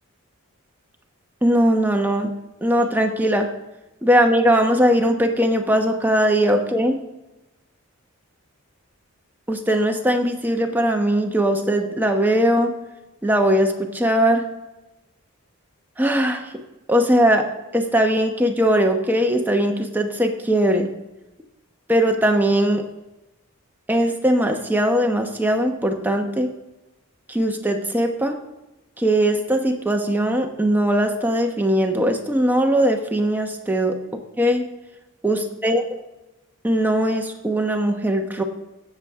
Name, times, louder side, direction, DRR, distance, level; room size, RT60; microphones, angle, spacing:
voice 1, 1.4-2.3 2.6-3.5 4.0-7.0 9.5-12.7 13.2-14.4 16.0-16.5 16.9-17.5 17.7-20.9 21.9-22.8 23.9-26.5 27.3-28.4 29.0-34.6 35.2-36.0 36.6-38.4, equal, 10° right, 3 dB, 0.9 m, -20 dB
16.5 x 7.2 x 3.6 m, 1.0 s
head